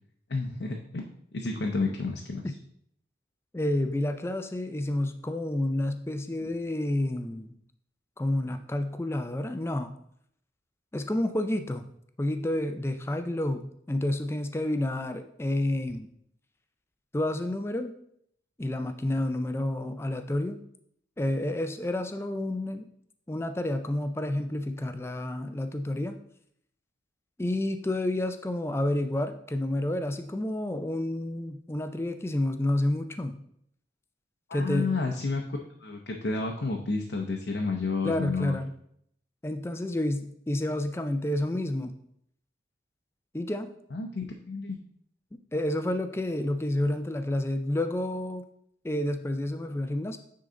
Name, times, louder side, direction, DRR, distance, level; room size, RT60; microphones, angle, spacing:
voice 1, 0.3-1.0 1.3-2.5 34.5-38.6 43.9-44.8, left 3 dB, 75° left, 2 dB, 0.7 m, -31 dB
voice 2, 3.5-7.5 8.2-9.9 10.9-11.9 12.2-16.1 17.1-17.9 18.6-20.6 21.2-22.9 23.3-26.2 27.4-33.4 34.5-34.9 38.0-38.7 39.4-41.9 43.3-43.7 45.3-48.4 48.8-50.2, left 1 dB, 15° left, 9 dB, 0.4 m, -29 dB
9.1 x 3.8 x 3.8 m, 0.69 s
head